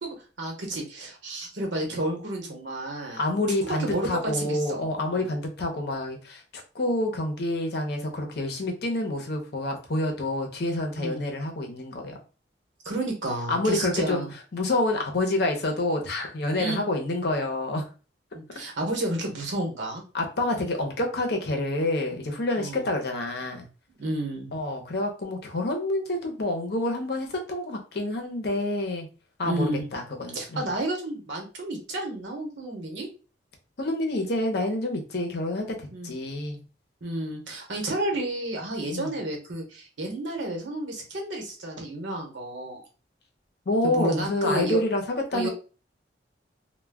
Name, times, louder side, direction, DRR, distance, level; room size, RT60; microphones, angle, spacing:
voice 1, 0.0-3.2 3.8-5.3 11.0-11.2 12.8-14.3 16.6-16.8 18.3-20.0 22.6-22.9 24.0-24.5 29.4-29.9 30.3-33.1 35.9-36.1 37.0-42.8 43.8-44.8 45.3-45.5, right 1 dB, 90° right, 1 dB, 0.9 m, -31 dB
voice 2, 3.2-6.4 6.7-12.2 13.5-14.2 14.5-17.9 20.1-23.7 24.5-29.1 29.4-30.7 33.8-36.6 38.9-39.1 43.7-45.5, left 2 dB, 60° left, 2 dB, 0.7 m, -28 dB
2.2 x 2.2 x 3.4 m, 0.34 s
head